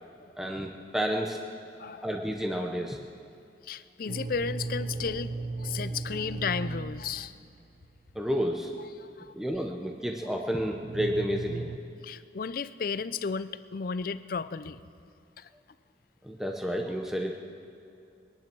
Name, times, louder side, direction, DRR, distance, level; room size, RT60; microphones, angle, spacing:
voice 1, 0.4-1.4 2.0-3.0 8.2-8.7 9.3-11.7 16.2-17.4, equal, 5° right, 1 dB, 0.8 m, -30 dB
voice 2, 3.6-7.3 8.9-9.3 12.0-14.8 15.4-15.5, left 5 dB, 55° left, 15 dB, 0.5 m, -34 dB
sound 1, 4.1-8.0 10.2-10.3 10.8-11.8, right 3 dB, 40° right, 0.4 m, -36 dB
21.5 x 10.5 x 6.1 m, 2.7 s
head